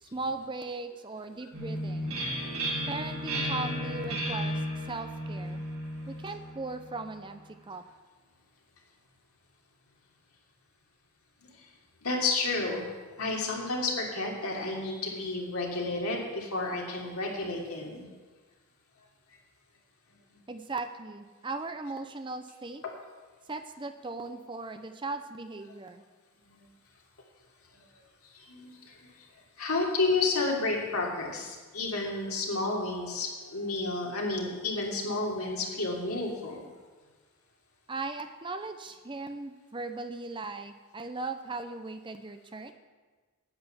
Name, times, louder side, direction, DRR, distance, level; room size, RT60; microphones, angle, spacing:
voice 1, 0.0-2.3 2.9-4.6 4.9-5.6 6.1-7.8 20.5-22.8 23.5-26.0 37.9-42.7, right 3 dB, 20° right, 8 dB, 0.6 m, -38 dB
sound 1, 1.5-7.1, equal, 80° right, 3.6 m, -34 dB
voice 2, 12.0-12.9 13.2-18.0 28.5-28.7 29.6-36.6, left 3 dB, 85° left, -1 dB, 3.0 m, -31 dB
10.5 x 9.5 x 7.2 m, 1.4 s
head